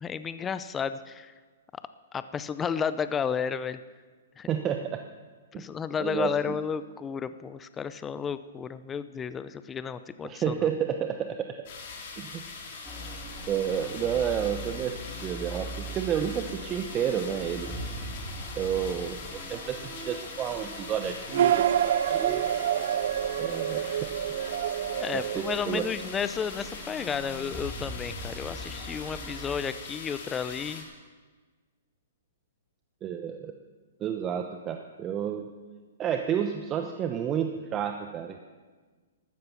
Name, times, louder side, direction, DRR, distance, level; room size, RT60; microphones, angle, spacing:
voice 1, 0.0-1.3 2.1-3.8 4.4-4.5 5.6-10.5 25.0-30.9, left 6 dB, 15° left, 13 dB, 0.6 m, -32 dB
voice 2, 4.5-5.0 5.5-5.7 6.0-6.6 10.2-11.5 12.2-12.4 13.5-17.7 18.5-22.5 23.4-24.0 25.1-25.9 33.0-33.5 34.0-35.5 36.0-38.4, right 9 dB, 25° right, 5 dB, 0.9 m, -31 dB
sound 1, 11.7-30.8, left 4 dB, 50° left, 4.2 m, -42 dB
sound 2, 12.8-29.6, right 1 dB, 5° right, 3.4 m, -42 dB
sound 3, 21.3-26.2, right 10 dB, 65° right, 0.4 m, -27 dB
13.5 x 13.0 x 7.1 m, 1.4 s
hypercardioid pair, 130°, 0 cm